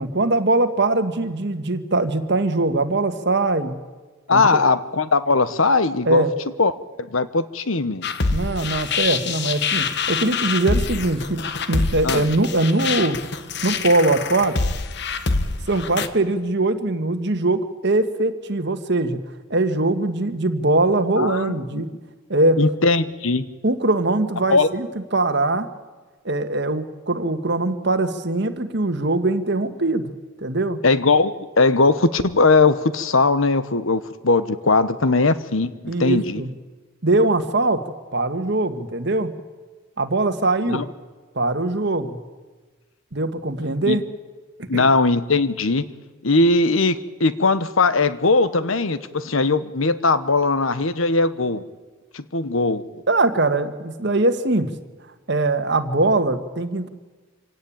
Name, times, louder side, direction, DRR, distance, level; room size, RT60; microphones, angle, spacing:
voice 1, 0.0-3.8 4.3-4.6 6.1-6.3 8.3-11.4 11.7-13.2 13.6-14.6 15.7-19.2 19.5-21.9 22.3-22.6 23.6-25.7 26.3-30.1 30.4-30.8 35.9-36.5 37.0-37.8 38.1-39.3 40.0-40.8 41.4-42.2 43.1-44.0 44.7-44.9 53.1-54.7 55.3-56.9, right 2 dB, 55° right, 8 dB, 1.6 m, -21 dB
voice 2, 4.3-6.2 6.6-6.7 7.0-8.1 12.0-12.2 21.2-21.8 22.6-23.5 24.5-24.7 30.8-36.4 40.7-40.8 43.9-44.0 44.7-45.8 46.2-51.6 52.1-52.9, left 3 dB, 85° left, 14 dB, 1.2 m, -19 dB
sound 1, 8.0-16.1, left 4 dB, 55° left, 1.2 m, -25 dB
26.0 x 17.5 x 8.8 m, 1.3 s
head